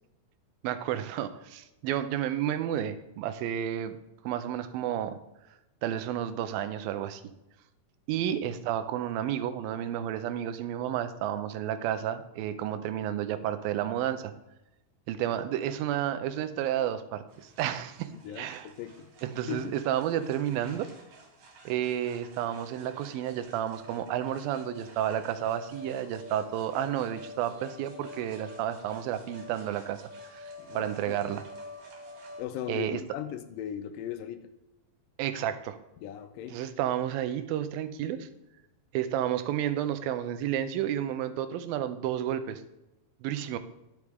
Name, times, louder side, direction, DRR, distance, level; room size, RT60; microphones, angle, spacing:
voice 1, 0.6-4.0 4.2-5.2 5.8-7.2 8.1-14.3 15.1-18.1 18.4-18.7 19.2-20.9 21.7-30.0 30.3-30.5 30.7-31.4 32.7-33.0 35.2-35.8 36.5-38.3 38.9-42.6 43.2-43.6, right 11 dB, 85° right, 11 dB, 2.4 m, -31 dB
sound 1, 17.3-32.4, left 2 dB, 70° right, 3.5 m, -48 dB
voice 2, 18.1-19.1 19.5-19.8 30.6-31.2 32.4-34.5 36.0-36.6, left 10 dB, 80° left, 10 dB, 2.2 m, -38 dB
10.5 x 8.1 x 3.5 m, 0.95 s
omnidirectional pair, 4.1 m